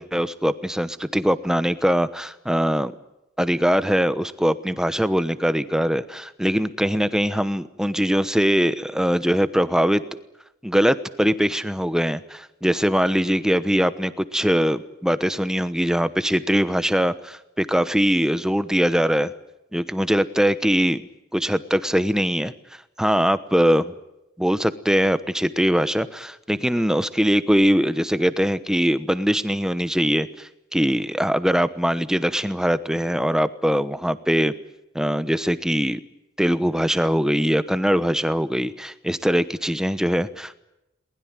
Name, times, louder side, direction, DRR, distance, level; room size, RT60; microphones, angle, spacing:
voice 1, 0.0-2.9 3.4-10.0 10.6-19.3 19.7-21.0 21.3-22.5 23.0-23.9 24.4-34.5 34.9-36.0 36.4-40.5, equal, 5° right, 13 dB, 1.0 m, -22 dB
22.0 x 20.0 x 9.1 m, 0.88 s
head